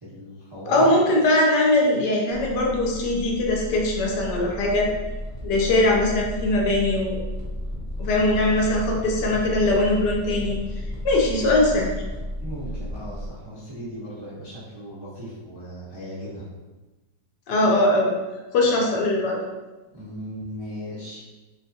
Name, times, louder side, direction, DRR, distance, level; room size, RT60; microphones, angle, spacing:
voice 1, 0.0-0.9 12.4-16.5 19.9-21.2, equal, 30° right, -10 dB, 0.5 m, -37 dB
voice 2, 0.7-4.9 5.4-7.2 8.0-10.6 11.0-11.9 17.5-18.1 18.5-19.4, left 1 dB, 75° left, -1 dB, 1.2 m, -21 dB
sound 1, 2.3-13.3, left 1 dB, 20° left, 0.6 m, -33 dB
3.4 x 3.2 x 2.7 m, 1.1 s
omnidirectional pair, 2.0 m